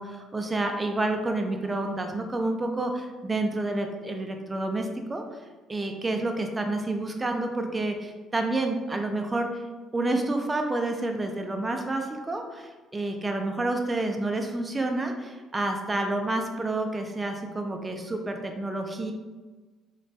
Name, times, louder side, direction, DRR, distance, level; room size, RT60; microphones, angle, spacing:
voice 1, 0.0-5.2 5.7-9.6 9.9-19.1, right 2 dB, 20° right, 4 dB, 0.4 m, -29 dB
2.9 x 2.2 x 2.7 m, 1.3 s
cardioid pair, 100°, 0 cm